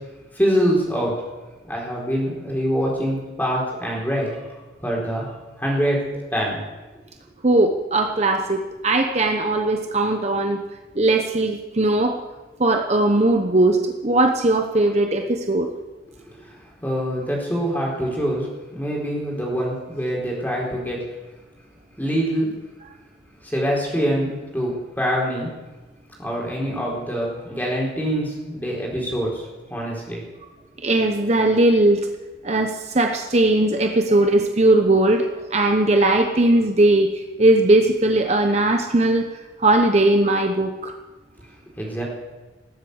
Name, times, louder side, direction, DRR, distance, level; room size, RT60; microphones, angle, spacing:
voice 1, 0.4-1.1 1.7-4.4 4.8-5.3 5.6-6.0 6.3-6.6 16.8-18.5 18.7-21.0 22.0-22.5 23.4-25.5 26.2-30.2 41.8-42.0, equal, 10° left, -3 dB, 4.2 m, -24 dB
voice 2, 7.4-10.6 11.0-12.1 12.6-15.7 30.8-32.1 32.4-39.3 39.6-40.9, right 2 dB, 35° right, 4 dB, 0.8 m, -19 dB
19.0 x 8.2 x 8.0 m, 1.2 s
head